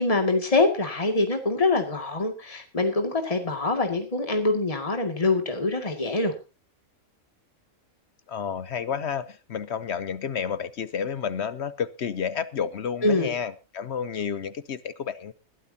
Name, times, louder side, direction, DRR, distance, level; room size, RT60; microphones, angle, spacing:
voice 1, 0.0-6.3 13.0-13.3, left 2 dB, 25° left, 4 dB, 2.3 m, -24 dB
voice 2, 8.3-15.3, left 7 dB, 60° left, 15 dB, 1.0 m, -30 dB
21.5 x 12.0 x 2.8 m, 0.30 s
omnidirectional pair, 1.3 m